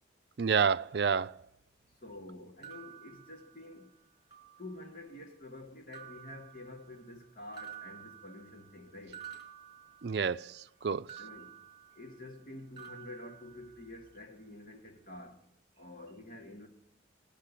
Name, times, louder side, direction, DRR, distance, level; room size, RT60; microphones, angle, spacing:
voice 1, 0.4-1.4 10.0-11.2, right 6 dB, 65° right, 0.5 m, -29 dB
voice 2, 2.0-3.9 4.6-9.2 11.2-11.5 12.0-15.4 15.8-16.7, left 1 dB, 50° left, 2.6 m, -48 dB
sound 1, 2.6-3.9 4.3-5.1 5.9-7.2 7.5-10.5 11.1-12.5 12.8-14.1, right 9 dB, 25° right, 2.1 m, -51 dB
17.0 x 6.7 x 10.0 m
head